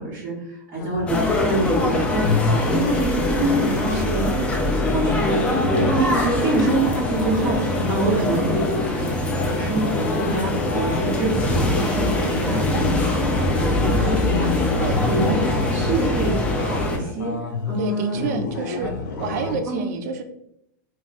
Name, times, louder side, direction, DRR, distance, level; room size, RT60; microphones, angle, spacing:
voice 1, 0.0-4.4 4.9-5.4 5.7-12.8 13.5-14.5 15.1-15.4 15.7-17.3 17.6-18.4 19.7-19.8, right 2 dB, 20° right, -9 dB, 1.1 m, -26 dB
sound 1, 0.8-19.6, left 3 dB, 80° left, 0.6 m, -30 dB
sound 2, 1.1-17.0, left 1 dB, 10° left, 0.4 m, -23 dB
voice 2, 3.9-4.3 8.1-8.3 12.2-12.9 14.8-15.0 17.8-18.9 19.2-20.2, right 5 dB, 60° right, 7 dB, 0.4 m, -30 dB
2.3 x 2.1 x 3.9 m, 0.78 s
supercardioid pair, 145°, 10 cm